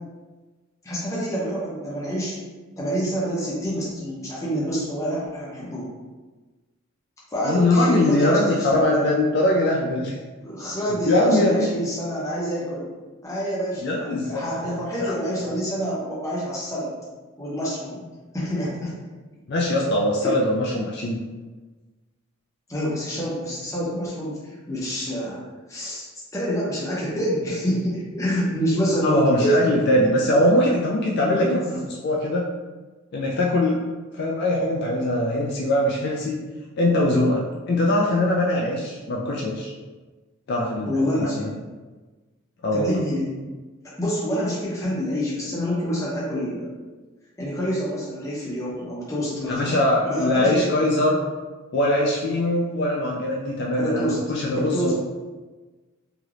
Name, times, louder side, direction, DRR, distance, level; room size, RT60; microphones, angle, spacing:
voice 1, 0.8-2.4 2.8-5.9 7.3-9.0 10.4-12.9 13.2-16.9 17.4-18.0 18.3-18.9 20.2-20.3 22.7-24.4 24.7-25.4 25.7-26.1 26.3-30.5 31.2-31.6 40.9-41.5 42.7-43.3 44.0-46.7 47.4-50.6 53.8-54.2 54.6-54.9, equal, 15° left, -6 dB, 0.7 m, -27 dB
voice 2, 7.4-10.2 10.9-11.7 13.8-14.5 15.0-15.1 19.5-21.2 29.0-32.5 33.1-33.8 34.1-36.4 36.8-39.7 40.5-41.5 42.6-43.0 49.5-51.2 51.7-54.9, left 1 dB, 50° left, -2 dB, 0.3 m, -22 dB
3.2 x 2.8 x 2.4 m, 1.3 s
head